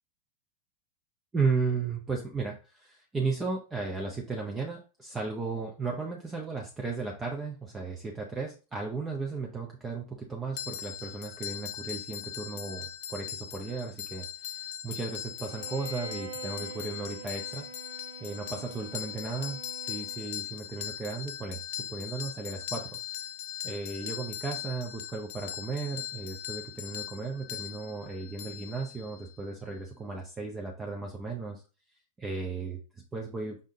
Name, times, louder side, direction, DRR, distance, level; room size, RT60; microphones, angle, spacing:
voice 1, 1.3-17.7 18.2-23.0 23.6-31.6 32.2-33.6, right 4 dB, 15° right, 1 dB, 0.7 m, -35 dB
sound 1, 10.6-29.3, left 11 dB, 55° left, 0.3 m, -40 dB
Bowed string instrument, 15.4-20.5, right 5 dB, 60° right, 0.8 m, -45 dB
5.4 x 3.5 x 2.7 m, 0.34 s
figure-of-eight pair, 90°, 0 cm